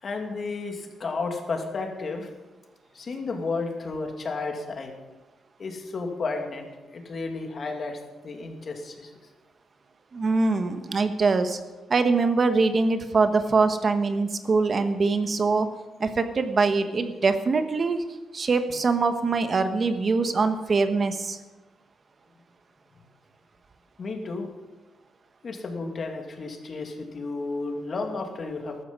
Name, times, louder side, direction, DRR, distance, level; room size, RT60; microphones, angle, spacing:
voice 1, 0.0-2.3 2.9-4.9 5.6-9.1 22.9-23.0 24.0-24.5 25.4-28.8, left 3 dB, 45° left, 3 dB, 2.5 m, -32 dB
voice 2, 10.1-11.6 11.9-15.7 16.0-18.0 18.3-21.4, right 4 dB, 40° right, 9 dB, 1.1 m, -23 dB
14.5 x 12.0 x 5.4 m, 1.2 s
cardioid pair, 95°, 0 cm